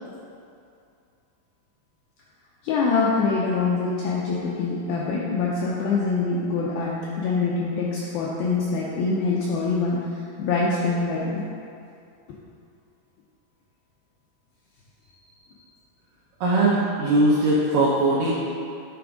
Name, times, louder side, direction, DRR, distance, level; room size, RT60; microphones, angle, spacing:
voice 1, 2.6-10.1 10.4-11.4 15.5-15.6, left 4 dB, 85° left, -5 dB, 2.1 m, -24 dB
voice 2, 16.4-18.3, right 2 dB, 85° right, -6 dB, 1.9 m, -20 dB
9.9 x 3.5 x 4.9 m, 2.5 s
omnidirectional pair, 5.0 m